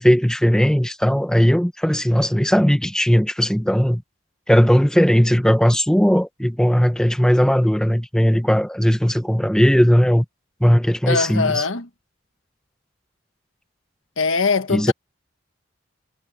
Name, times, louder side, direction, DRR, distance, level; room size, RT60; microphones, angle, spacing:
voice 1, 0.0-4.0 4.5-10.2 10.6-11.6 14.7-14.9, equal, 5° left, 1.0 m, -17 dB
voice 2, 11.1-11.9 14.2-14.9, left 4 dB, 75° left, 1.5 m, -21 dB
head